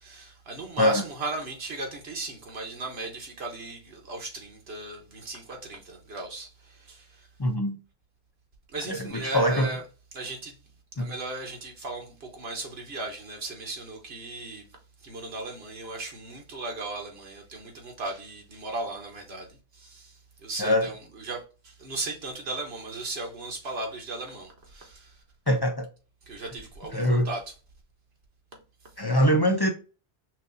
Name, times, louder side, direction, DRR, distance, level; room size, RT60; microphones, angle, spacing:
voice 1, 0.0-7.3 8.7-9.8 10.1-10.6 11.0-14.7 15.0-25.2 26.3-27.5, right 2 dB, 65° right, 1.3 m, -37 dB
voice 2, 7.4-7.8 8.9-9.7 11.0-11.1 20.6-20.9 25.5-25.9 26.9-27.3 29.0-29.7, equal, 40° left, 0.3 m, -23 dB
6.0 x 2.7 x 2.5 m
omnidirectional pair, 1.1 m